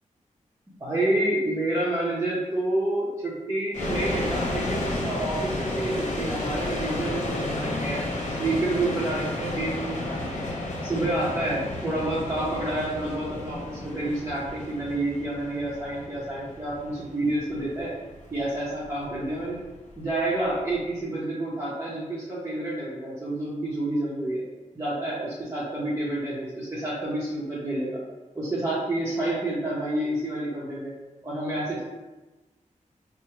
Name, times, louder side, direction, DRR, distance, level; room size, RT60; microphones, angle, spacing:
voice 1, 0.8-8.0 8.4-10.4 10.8-17.9 18.3-19.6 20.0-24.4 24.7-28.0 28.3-30.9 31.2-31.8, right 1 dB, 20° right, -9 dB, 0.7 m, -29 dB
sound 1, 3.7-20.7, left 1 dB, 65° left, 0.7 m, -32 dB
4.5 x 2.0 x 3.0 m, 1.1 s
wide cardioid pair, 160°, 13 cm